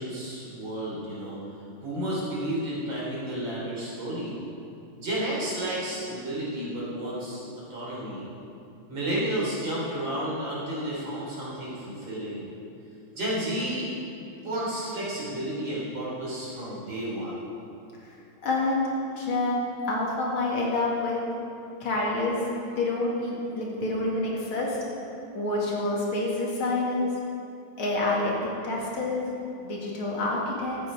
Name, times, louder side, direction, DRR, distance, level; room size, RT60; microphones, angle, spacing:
voice 1, 0.0-1.4 1.8-4.4 5.0-7.4 7.7-8.3 8.9-12.4 13.1-13.9 14.4-17.4, right 1 dB, 65° right, -7 dB, 4.3 m, -31 dB
voice 2, 18.4-18.9 19.2-21.2 21.8-22.5 22.8-24.8 25.3-27.1 27.8-28.4 28.6-29.3 29.6-30.8, left 2 dB, 80° left, -3 dB, 2.9 m, -27 dB
13.5 x 8.9 x 5.0 m, 2.6 s
omnidirectional pair, 2.3 m